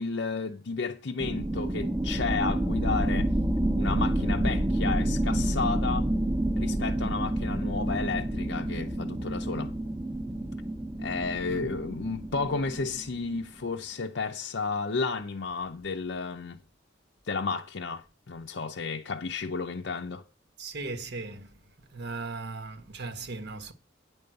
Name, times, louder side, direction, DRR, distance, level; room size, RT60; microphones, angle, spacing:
voice 1, 0.0-3.3 3.8-6.1 6.6-9.7 11.0-16.6 17.3-20.2, left 4 dB, 65° left, 0.6 m, -32 dB
sound 1, 1.2-13.5, right 1 dB, 20° right, 0.9 m, -29 dB
voice 2, 20.6-21.6 21.9-23.7, right 3 dB, 60° right, 1.3 m, -37 dB
9.5 x 5.3 x 7.8 m
head